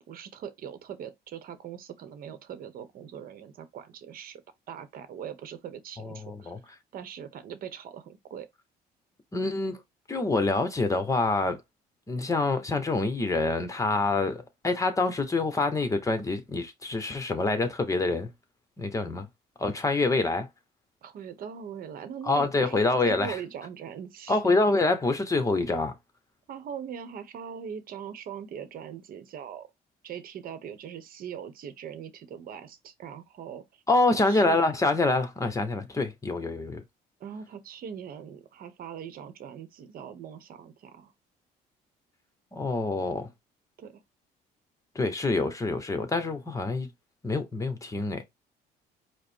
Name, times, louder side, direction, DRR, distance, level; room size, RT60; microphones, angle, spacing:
voice 1, 0.1-4.4 4.7-6.5 6.9-8.5 21.0-24.4 26.5-29.7 30.0-33.6 34.3-34.6 37.2-41.1 43.8-44.0, right 8 dB, 60° right, 0.9 m, -41 dB
voice 2, 6.0-6.6 9.3-9.8 10.1-11.6 12.1-18.3 18.8-19.3 19.6-20.5 22.2-23.4 24.3-25.9 33.9-36.8 42.5-43.3 44.9-46.9 47.2-48.2, left 3 dB, 20° left, 1.1 m, -26 dB
4.9 x 2.2 x 4.4 m
cardioid pair, 110°, 17 cm